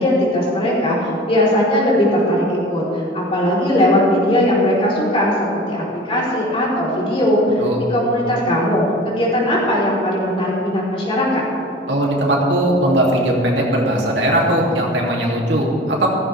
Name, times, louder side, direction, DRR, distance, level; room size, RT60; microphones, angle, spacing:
voice 1, 0.0-7.6 7.9-11.4, left 1 dB, 30° left, -5 dB, 3.8 m, -18 dB
voice 2, 11.9-16.1, right 1 dB, 80° right, -2 dB, 2.8 m, -18 dB
16.0 x 15.0 x 3.5 m, 2.8 s
head